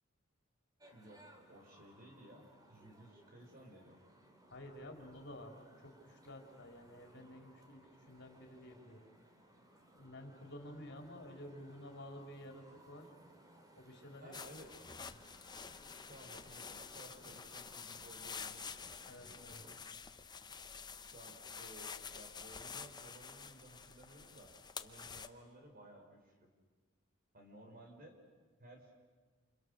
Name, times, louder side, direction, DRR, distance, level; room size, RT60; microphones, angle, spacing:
sound 1, 0.8-19.8, right 1 dB, 20° right, 2.9 m, -63 dB
voice 1, 0.9-4.0 14.2-14.7 16.1-18.9 21.1-24.5 24.8-26.5 27.3-28.2 28.6-28.9, right 1 dB, 45° right, 3 dB, 5.0 m, -57 dB
voice 2, 4.5-9.1 10.0-13.1 13.8-14.4 19.1-19.6, left 1 dB, 60° left, 2 dB, 3.8 m, -52 dB
sound 2, 14.3-25.3, left 6 dB, 20° left, 0.8 m, -49 dB
29.0 x 28.0 x 6.6 m, 1.4 s
head